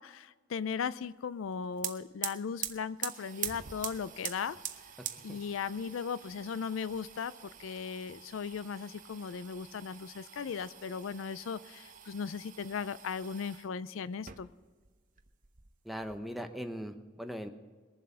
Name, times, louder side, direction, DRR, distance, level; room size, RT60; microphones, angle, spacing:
voice 1, 0.0-4.6 5.2-14.5, left 6 dB, 75° left, 17 dB, 0.4 m, -37 dB
sound 1, 1.4-1.5 1.7-13.7 14.1-14.9 15.2-16.2, right 10 dB, 40° right, 0.8 m, -44 dB
voice 2, 15.8-17.5, equal, ahead, 6 dB, 0.8 m, -39 dB
21.5 x 7.5 x 5.6 m, 1.4 s
head